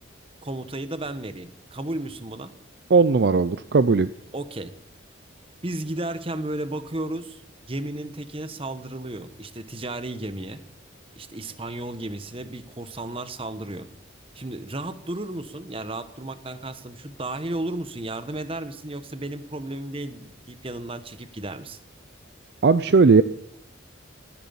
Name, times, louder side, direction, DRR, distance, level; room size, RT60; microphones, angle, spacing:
voice 1, 0.4-2.5 4.3-4.7 5.6-10.6 11.2-13.9 14.3-21.8, right 1 dB, 25° right, 11 dB, 1.1 m, -33 dB
voice 2, 2.9-4.1 22.6-23.2, right 4 dB, 55° right, 13 dB, 0.4 m, -17 dB
14.5 x 10.5 x 7.1 m, 0.78 s
head